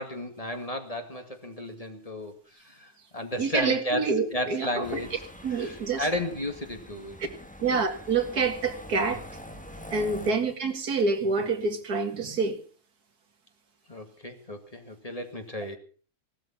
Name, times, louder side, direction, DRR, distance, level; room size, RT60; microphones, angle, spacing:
voice 1, 0.0-5.2 5.5-7.2 10.2-10.4 13.9-15.8, left 1 dB, 25° left, 5 dB, 2.2 m, -34 dB
voice 2, 3.4-5.0 5.4-6.1 7.6-9.2 9.9-12.6, right 4 dB, 85° right, 6 dB, 2.4 m, -27 dB
sound 1, 4.8-10.3, equal, 5° left, 1.5 m, -45 dB
18.0 x 12.5 x 5.9 m, 0.42 s
omnidirectional pair, 1.6 m